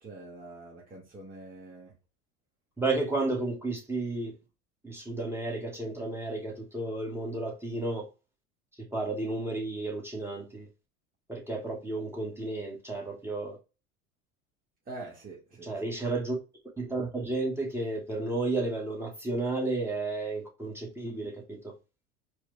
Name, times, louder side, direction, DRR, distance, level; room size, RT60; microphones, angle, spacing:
voice 1, 0.0-1.9 14.9-15.7, right 2 dB, 25° right, 1.5 m, -45 dB
voice 2, 2.8-4.4 4.8-8.1 8.8-10.7 11.3-13.6 15.6-16.4 16.8-21.7, right 2 dB, 5° right, 1.5 m, -32 dB
4.7 x 2.4 x 3.3 m
hypercardioid pair, 85°, 35 cm